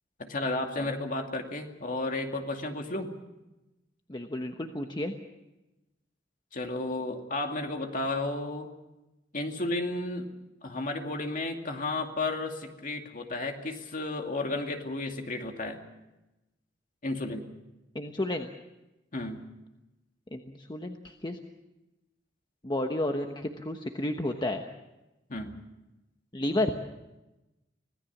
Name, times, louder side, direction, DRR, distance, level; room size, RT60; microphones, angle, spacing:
voice 1, 0.2-3.1 6.5-8.7 9.3-10.3 10.6-15.8 17.0-17.5 19.1-19.4 25.3-25.6, left 2 dB, 45° left, 3 dB, 2.4 m, -33 dB
voice 2, 4.1-5.1 17.9-18.5 20.3-21.5 22.6-24.6 26.3-26.7, left 1 dB, 25° left, 4 dB, 1.1 m, -31 dB
25.5 x 17.5 x 7.2 m, 1.0 s
head